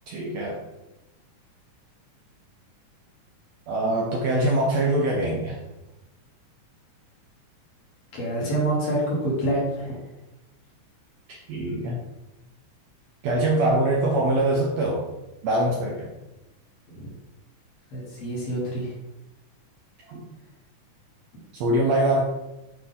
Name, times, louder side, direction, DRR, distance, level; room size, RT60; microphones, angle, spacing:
voice 1, 0.1-0.6 3.7-5.6 11.3-12.0 13.2-15.1 15.4-16.1 20.1-20.3 21.5-22.2, right 1 dB, 70° right, -2 dB, 1.7 m, -23 dB
voice 2, 8.1-10.0 16.9-17.1 17.9-19.0, right 1 dB, 55° left, -4 dB, 2.6 m, -27 dB
8.3 x 3.3 x 3.7 m, 0.97 s
omnidirectional pair, 3.8 m